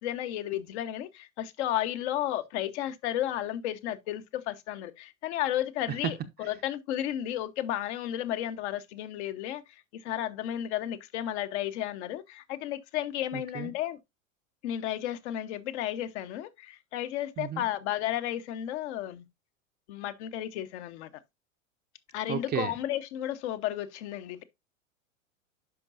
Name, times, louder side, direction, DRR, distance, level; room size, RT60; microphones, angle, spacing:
voice 1, 0.0-9.6 10.0-14.0 14.6-19.2 19.9-21.1 22.1-24.4, left 12 dB, 55° left, 1.1 m, -33 dB
voice 2, 13.3-13.7 17.4-17.7 22.3-22.7, right 9 dB, 25° right, 0.7 m, -33 dB
10.5 x 5.4 x 2.6 m
hypercardioid pair, 95°, 40 cm